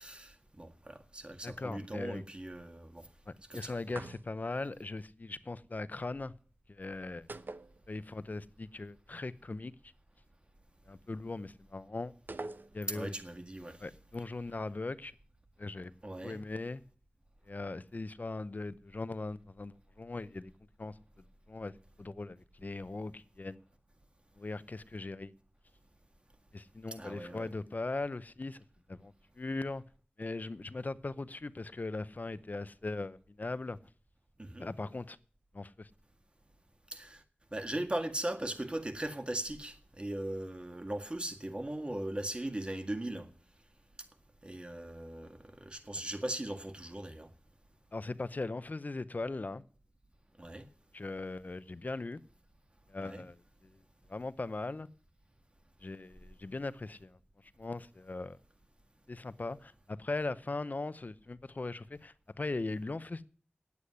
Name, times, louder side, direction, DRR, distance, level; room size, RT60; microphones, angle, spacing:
voice 1, 0.0-3.1 3.5-3.8 12.9-13.8 16.0-16.4 27.0-27.5 34.4-34.7 36.9-37.2 37.5-43.3 44.4-47.3 50.4-50.7 53.0-53.2, right 1 dB, 30° right, 1.8 m, -39 dB
voice 2, 1.4-2.2 3.3-6.3 6.7-7.3 7.9-9.7 10.9-12.1 12.7-13.1 13.8-15.1 15.6-15.9 16.2-16.8 17.5-20.5 20.8-20.9 21.5-21.7 22.0-23.6 24.4-25.3 26.5-29.8 30.2-33.8 34.6-35.2 35.5-35.9 47.9-49.6 50.9-52.2 52.9-53.4 53.7-53.8 54.1-54.9 55.8-57.2 57.6-58.4 59.1-63.2, left 3 dB, 50° left, 0.7 m, -39 dB
sound 1, 3.9-4.6 7.3-8.3 8.6-8.7 12.3-13.1, right 2 dB, 60° right, 0.9 m, -45 dB
9.6 x 8.5 x 9.7 m
wide cardioid pair, 55°, 4 cm